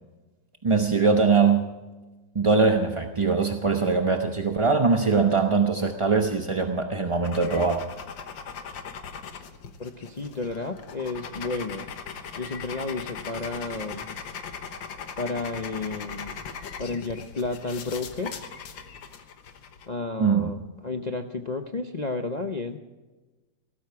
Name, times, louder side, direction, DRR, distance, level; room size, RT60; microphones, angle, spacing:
voice 1, 0.6-1.6 2.3-7.8 20.2-20.5, right 4 dB, 30° right, 4 dB, 0.6 m, -22 dB
sound 1, 7.2-19.9, left 6 dB, 90° left, 1.9 m, -39 dB
voice 2, 9.8-11.9 12.3-14.1 15.2-16.3 16.8-18.3 19.9-22.8, left 3 dB, 50° left, 5 dB, 0.5 m, -32 dB
17.5 x 14.5 x 4.7 m, 1.2 s
omnidirectional pair, 2.0 m